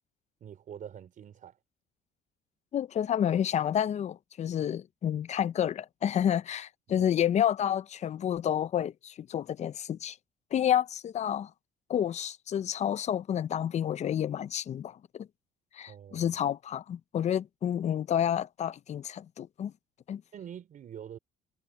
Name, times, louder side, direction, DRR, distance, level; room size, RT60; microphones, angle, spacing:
voice 1, 0.4-1.6 7.0-7.1 15.9-16.3 20.3-21.2, right 9 dB, 50° right, 4.0 m, -45 dB
voice 2, 2.7-10.2 10.5-11.5 11.9-15.3 15.7-19.7 20.1-20.2, left 10 dB, 45° left, 0.6 m, -29 dB
cardioid pair, 110°, 17 cm